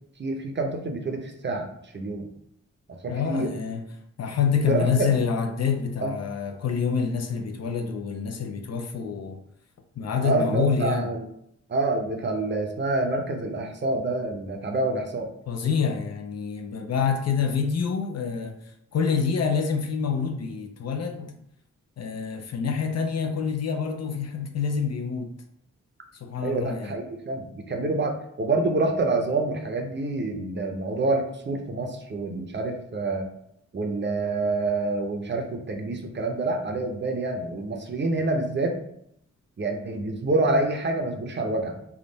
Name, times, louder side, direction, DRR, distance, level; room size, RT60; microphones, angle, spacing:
voice 1, 0.2-1.7 1.9-2.3 3.0-3.5 4.6-5.1 6.0-6.1 10.2-11.2 11.7-15.3 26.4-33.3 33.7-38.8 39.6-41.8, right 2 dB, 40° right, 0.6 m, -27 dB
voice 2, 3.1-3.9 4.2-9.4 10.0-11.1 15.5-18.6 18.9-21.3 22.0-25.3 26.2-27.0, left 6 dB, 60° left, 0.5 m, -27 dB
3.6 x 2.3 x 3.9 m
wide cardioid pair, 120°, 29 cm